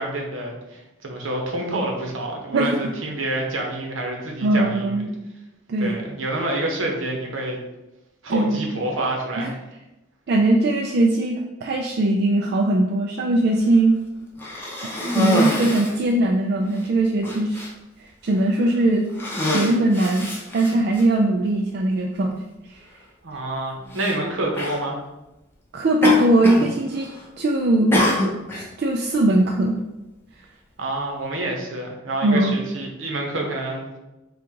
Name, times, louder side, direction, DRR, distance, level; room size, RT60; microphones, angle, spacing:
voice 1, 0.0-5.0 5.8-7.6 8.2-9.6 23.2-25.0 30.8-34.0, right 1 dB, 80° right, 1 dB, 0.9 m, -28 dB
voice 2, 4.4-5.1 5.7-6.0 8.3-8.7 9.4-9.5 10.3-13.9 15.1-17.7 18.2-19.1 19.5-20.3 20.5-22.3 25.7-27.1 27.4-27.9 28.5-29.8 32.2-32.5, right 1 dB, 55° right, 0 dB, 0.3 m, -20 dB
Cough, 14.4-16.0 16.7-16.8 17.2-17.7 18.5-18.7 19.1-21.0 22.0-22.1 23.9-24.1 24.5-24.8 26.0-26.7 27.0-27.4 27.9-28.7, left 1 dB, 10° left, 0.6 m, -25 dB
3.7 x 2.4 x 4.5 m, 0.97 s
head